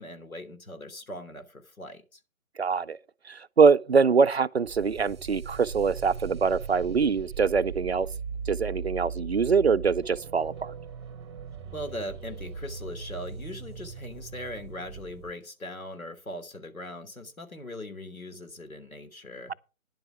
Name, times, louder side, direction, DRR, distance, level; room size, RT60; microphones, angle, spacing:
voice 1, 0.0-2.2 11.7-19.5, left 1 dB, 75° left, 3.0 m, -40 dB
voice 2, 2.6-3.0 3.3-8.1 8.5-10.7, right 5 dB, 50° right, 0.5 m, -23 dB
sound 1, 4.6-15.3, right 6 dB, 20° right, 1.0 m, -39 dB
10.5 x 7.5 x 5.9 m
figure-of-eight pair, 140°, 42 cm